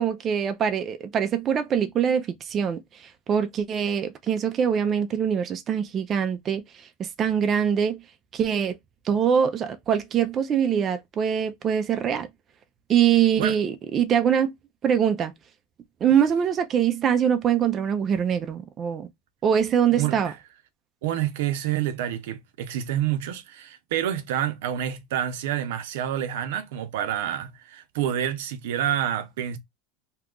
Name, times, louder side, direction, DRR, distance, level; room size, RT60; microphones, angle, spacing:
voice 1, 0.0-8.0 8.3-8.8 9.0-12.3 12.9-14.5 14.8-15.3 16.0-19.1 19.4-20.3, right 8 dB, 25° right, 0.4 m, -23 dB
voice 2, 19.9-20.4 21.0-29.6, right 10 dB, 80° right, 0.6 m, -28 dB
2.8 x 2.4 x 3.6 m
supercardioid pair, 155°, 0 cm